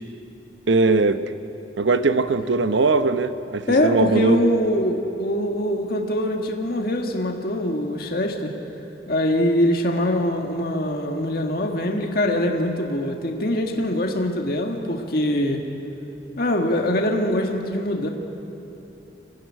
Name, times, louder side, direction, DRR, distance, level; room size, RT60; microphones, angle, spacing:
voice 1, 0.7-1.2 1.8-4.4, right 3 dB, 85° right, 10 dB, 0.9 m, -20 dB
voice 2, 3.7-8.5 9.1-15.6 16.4-18.1, left 1 dB, 55° left, 2 dB, 1.7 m, -23 dB
24.0 x 15.5 x 9.9 m, 2.9 s
head